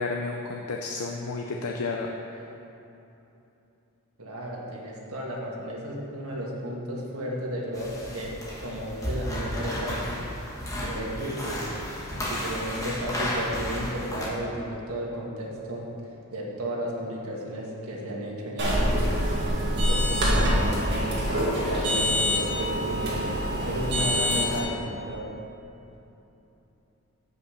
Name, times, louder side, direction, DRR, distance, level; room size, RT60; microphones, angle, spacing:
voice 1, 0.0-2.5, left 3 dB, 80° left, 1 dB, 0.5 m, -32 dB
voice 2, 4.2-10.0 10.7-11.7 12.3-15.8 16.3-19.0 19.7-21.2 21.6-25.2, equal, 80° right, -3 dB, 1.6 m, -33 dB
sound 1, 7.7-14.3, left 1 dB, 15° left, 1.2 m, -33 dB
sound 2, 18.6-24.6, equal, 50° right, 1.9 m, -25 dB
8.4 x 5.5 x 5.6 m, 3.0 s
head